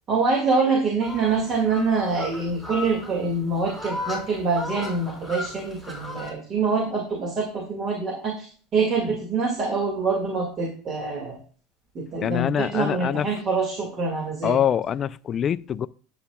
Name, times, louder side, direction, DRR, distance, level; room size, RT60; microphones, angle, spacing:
voice 1, 0.1-8.5 8.7-11.4 12.0-14.6, right 4 dB, 35° right, 1.8 m, -25 dB
sound 1, 1.0-6.3, left 2 dB, 5° right, 3.7 m, -36 dB
voice 2, 12.2-13.3 14.4-15.9, left 9 dB, 30° left, 0.3 m, -24 dB
11.5 x 8.0 x 2.2 m
supercardioid pair, 140°, 0 cm